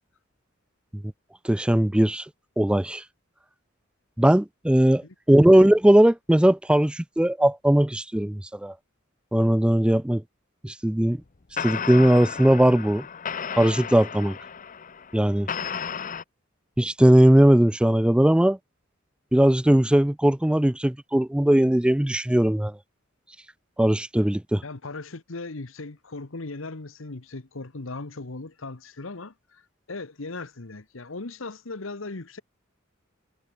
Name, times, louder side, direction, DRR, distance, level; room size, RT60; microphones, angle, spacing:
voice 1, 1.4-2.3 2.6-3.0 4.2-8.7 9.3-10.2 10.6-11.2 11.6-13.1 13.5-14.4 15.1-15.5 16.8-18.6 19.3-22.8 23.8-24.6, right 1 dB, 5° right, 0.3 m, -19 dB
sound 1, 11.0-11.2 11.6-16.2, left 7 dB, 40° left, 0.8 m, -33 dB
voice 2, 24.6-32.4, left 3 dB, 80° left, 1.3 m, -38 dB
head